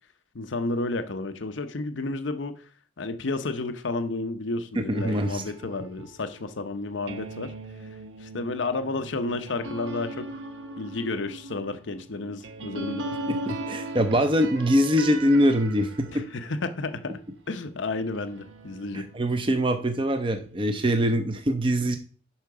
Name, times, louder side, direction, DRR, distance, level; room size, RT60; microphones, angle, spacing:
voice 1, 0.3-2.6 3.0-7.5 8.2-10.3 10.8-13.1 16.1-17.2 17.5-19.1, left 3 dB, 80° left, 0.8 m, -31 dB
voice 2, 4.8-5.4 13.3-16.3 18.9-22.0, equal, 25° right, 0.7 m, -23 dB
sound 1, 5.0-17.5 18.0-20.9, right 2 dB, 80° right, 1.1 m, -40 dB
8.7 x 5.8 x 4.7 m
head